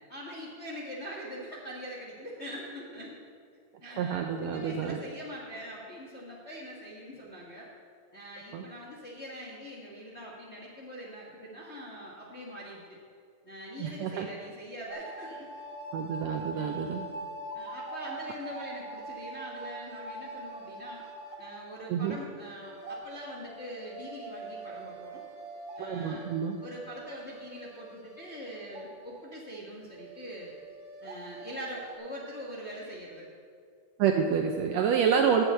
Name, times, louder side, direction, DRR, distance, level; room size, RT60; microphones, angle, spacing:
voice 1, 0.0-3.2 3.8-7.7 8.1-13.0 13.4-15.5 16.5-17.0 17.5-21.0 21.4-25.2 25.8-26.3 26.6-30.5 31.0-33.3 34.7-35.3, equal, 60° left, -4 dB, 0.7 m, -43 dB
voice 2, 3.8-5.0 8.5-8.6 13.8-14.3 15.9-17.1 21.9-22.2 25.8-26.6 34.0-35.4, right 7 dB, 85° right, 3 dB, 1.5 m, -28 dB
sound 1, 14.9-29.2 29.6-29.7 30.0-32.0, right 2 dB, 65° right, 2.7 m, -43 dB
8.7 x 8.0 x 7.7 m, 2.2 s
omnidirectional pair, 3.7 m